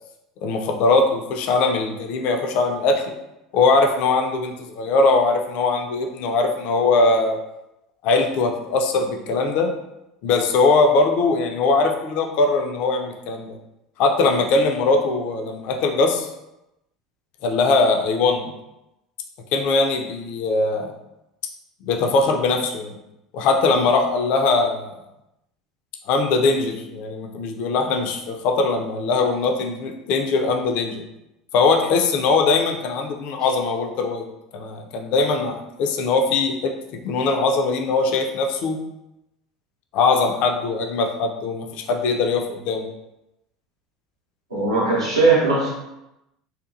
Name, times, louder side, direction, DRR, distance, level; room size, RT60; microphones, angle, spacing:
voice 1, 0.4-3.2 3.5-7.4 8.0-9.7 10.2-13.6 14.0-16.3 17.4-18.5 19.5-20.9 21.8-23.0 23.3-24.9 26.1-31.0 31.5-34.2 34.5-38.8 39.9-42.9, left 3 dB, 50° left, 3 dB, 0.3 m, -21 dB
voice 2, 44.5-45.7, right 3 dB, 75° right, -6 dB, 0.7 m, -19 dB
2.8 x 2.2 x 2.4 m, 0.91 s
figure-of-eight pair, 70°, 3 cm